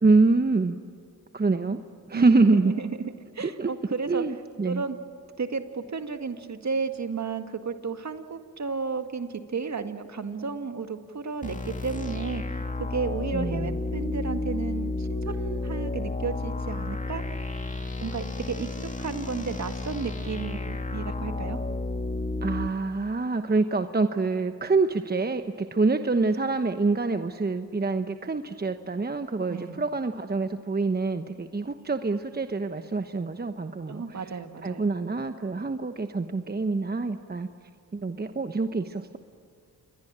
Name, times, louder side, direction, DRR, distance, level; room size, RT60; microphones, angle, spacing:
voice 1, 0.0-0.8 1.3-1.8 2.1-2.7 3.4-3.7 4.1-4.8 13.3-13.8 22.4-34.2 34.6-37.5 37.9-39.2, right 3 dB, 25° right, 8 dB, 1.2 m, -26 dB
voice 2, 2.1-4.2 4.7-5.0 5.4-17.2 18.0-21.6 29.5-29.8 33.9-34.9, right 5 dB, 45° right, 7 dB, 2.0 m, -33 dB
sound 1, 11.4-22.7, left 2 dB, 20° left, 2.3 m, -32 dB
28.0 x 23.0 x 8.9 m, 2.2 s
cardioid pair, 55°, 38 cm